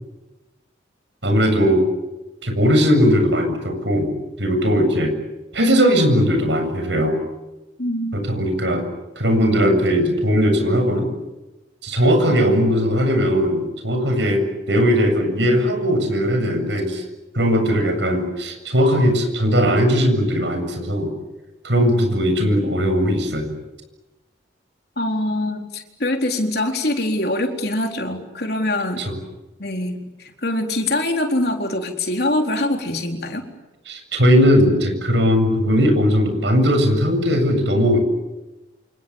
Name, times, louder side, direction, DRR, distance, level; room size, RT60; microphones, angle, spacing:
voice 1, 1.2-1.9 2.4-4.1 4.4-5.1 5.5-7.2 8.1-8.8 9.2-11.1 11.8-17.0 17.3-21.1 21.6-23.5 29.0-29.1 33.9-38.0, equal, 75° right, 6 dB, 7.7 m, -18 dB
voice 2, 7.8-8.2 25.0-29.0 29.6-33.4, left 1 dB, 60° left, 3 dB, 4.1 m, -24 dB
28.5 x 28.0 x 7.3 m, 1.1 s
head